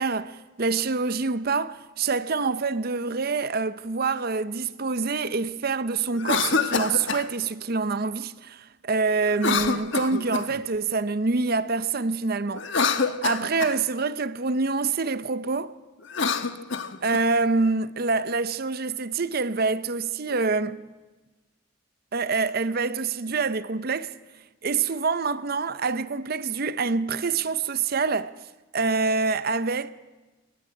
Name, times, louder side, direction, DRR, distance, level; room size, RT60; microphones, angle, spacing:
voice 1, 0.0-15.7 17.0-20.8 22.1-24.1 24.6-28.3 28.7-29.9, right 4 dB, 50° right, 0.7 m, -26 dB
Cough, 6.1-7.3 9.3-10.6 12.5-13.8 16.0-17.2, left 5 dB, 65° left, 1.3 m, -26 dB
21.5 x 19.0 x 9.8 m
head